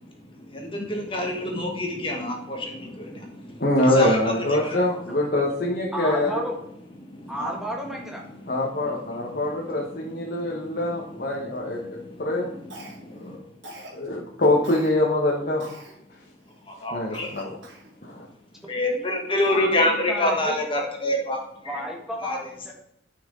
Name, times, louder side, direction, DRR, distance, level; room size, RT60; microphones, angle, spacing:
voice 1, 0.5-4.2 4.6-4.8 7.0-7.5 10.3-10.8 11.7-12.3 12.8-13.4 16.7-17.3 18.7-21.4 22.2-22.4, left 1 dB, 30° left, 1 dB, 1.8 m, -27 dB
voice 2, 3.6-6.4 8.5-11.8 12.2-12.5 13.1-13.4 13.9-15.6 16.9-17.6 18.0-18.2, left 1 dB, 50° left, -3 dB, 1.4 m, -24 dB
voice 3, 5.9-6.6 7.3-8.2 18.6-18.7 19.5-20.6 21.6-22.7, equal, ahead, -1 dB, 1.8 m, -33 dB
Cough, 12.7-13.2 13.6-14.0 14.6-14.9 15.6-16.0 16.5-16.6 17.1-17.9, right 1 dB, 75° right, 2.6 m, -43 dB
10.5 x 6.1 x 3.9 m, 0.75 s
head